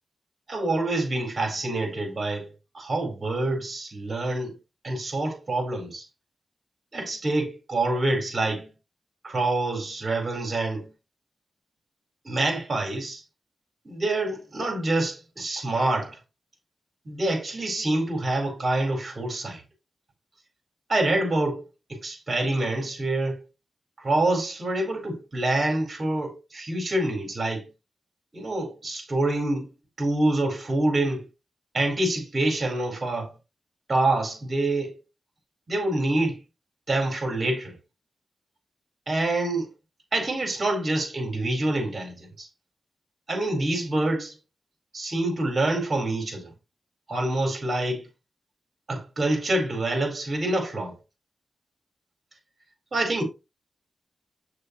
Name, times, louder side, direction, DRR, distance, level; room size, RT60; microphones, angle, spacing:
voice 1, 0.5-2.5 2.7-4.5 4.8-6.0 6.9-8.7 9.2-10.9 12.2-13.2 13.8-16.2 17.0-19.6 20.9-21.6 21.9-23.4 24.0-27.7 28.3-29.7 30.0-31.3 31.7-33.3 33.9-34.9 35.7-36.4 36.9-37.8 39.1-39.7 40.1-42.5 43.3-44.3 44.9-46.5 47.1-48.1 48.9-50.9 52.9-53.2, right 2 dB, 45° right, 4.6 m, -26 dB
8.1 x 6.7 x 3.2 m
wide cardioid pair, 95°, 0 cm